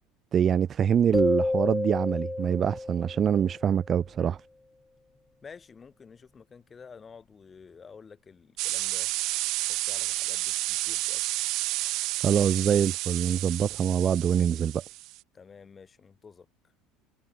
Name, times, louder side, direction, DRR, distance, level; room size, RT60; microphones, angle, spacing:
voice 1, 0.3-4.4 12.2-14.8, right 8 dB, 40° right, 0.4 m, -24 dB
sound 1, 1.1-3.8, left 2 dB, 10° left, 0.6 m, -30 dB
voice 2, 5.4-9.1 9.7-11.5 15.3-16.5, left 5 dB, 30° left, 6.5 m, -50 dB
sound 2, 8.6-15.2, right 19 dB, 60° right, 0.9 m, -31 dB
hypercardioid pair, 85°, 0 cm